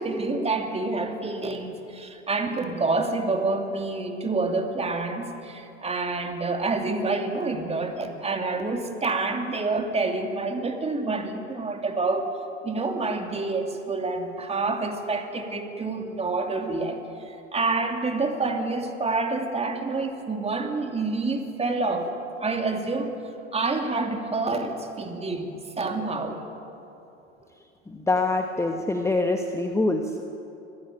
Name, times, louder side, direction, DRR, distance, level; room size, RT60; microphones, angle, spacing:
voice 1, 0.0-12.3 12.6-17.0 17.2-22.1 22.4-23.1 23.5-26.5, right 3 dB, 15° right, 4 dB, 2.7 m, -28 dB
voice 2, 27.9-30.2, left 2 dB, 10° left, 5 dB, 1.2 m, -25 dB
24.5 x 15.5 x 8.9 m, 2.9 s
hypercardioid pair, 90°, 36 cm